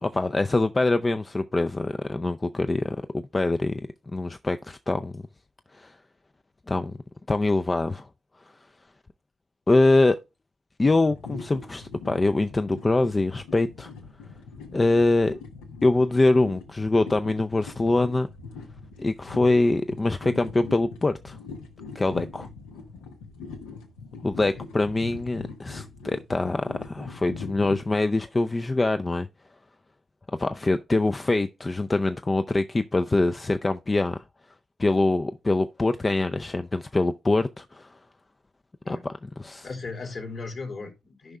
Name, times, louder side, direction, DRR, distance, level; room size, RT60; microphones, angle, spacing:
voice 1, 0.0-3.0 3.3-3.8 4.1-5.2 5.7-5.9 6.7-6.9 7.3-8.1 9.7-10.2 10.8-13.9 14.7-15.4 15.8-18.3 19.0-21.4 21.9-22.5 24.2-29.3 30.4-34.2 34.8-37.9 38.9-39.1 39.4-39.7, left 2 dB, 30° left, 0.5 m, -24 dB
sound 1, 11.0-27.9, left 4 dB, 80° left, 1.0 m, -42 dB
voice 2, 39.6-41.4, left 3 dB, 60° left, 2.9 m, -37 dB
14.0 x 5.4 x 2.3 m
hypercardioid pair, 40°, 0 cm